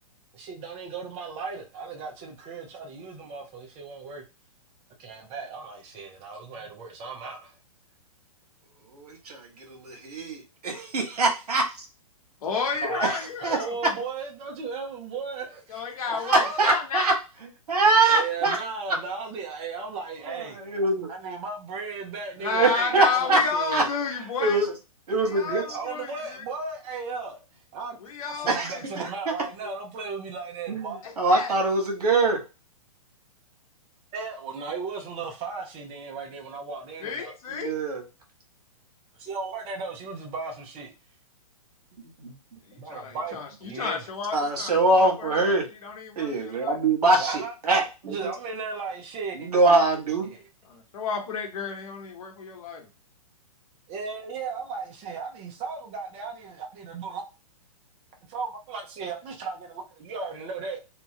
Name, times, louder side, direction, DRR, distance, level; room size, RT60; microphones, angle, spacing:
voice 1, 0.3-4.2 5.0-7.5 12.8-13.1 13.4-16.6 18.1-20.6 21.1-23.9 25.7-27.4 27.7-28.0 28.2-31.0 34.1-37.3 39.2-40.9 42.8-44.1 47.2-47.5 48.0-49.5 50.3-50.4 53.9-57.2 58.3-60.8, right 4 dB, 30° right, 0.8 m, -36 dB
voice 2, 8.9-11.8 13.0-13.6 16.1-17.1 17.7-18.6 20.3-21.1 22.5-23.4 23.7-23.8 24.4-24.7 25.1-25.6 28.5-29.3 30.7-32.4 37.5-38.0 42.2-42.3 44.3-45.6 46.2-48.3 49.3-50.3, right 2 dB, 85° right, 1.2 m, -23 dB
voice 3, 12.4-13.8 15.7-17.1 22.4-24.6 25.3-26.4 28.0-28.9 31.0-31.5 37.0-37.8 42.7-45.5 45.8-46.8 50.7-52.9, left 5 dB, 65° left, 1.1 m, -31 dB
2.9 x 2.4 x 2.8 m
hypercardioid pair, 130°, 19 cm